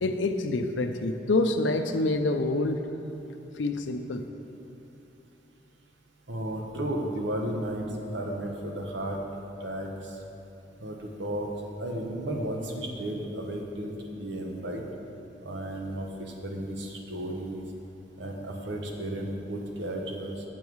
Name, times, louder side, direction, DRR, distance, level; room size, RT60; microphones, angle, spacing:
voice 1, 0.0-2.8 3.5-4.3, left 2 dB, 90° left, 7 dB, 0.5 m, -27 dB
voice 2, 6.3-9.2 9.6-10.2 10.8-11.5 11.8-14.8 15.4-17.6 18.2-20.4, right 1 dB, 75° right, 1 dB, 1.0 m, -34 dB
7.5 x 7.2 x 4.6 m, 2.9 s
head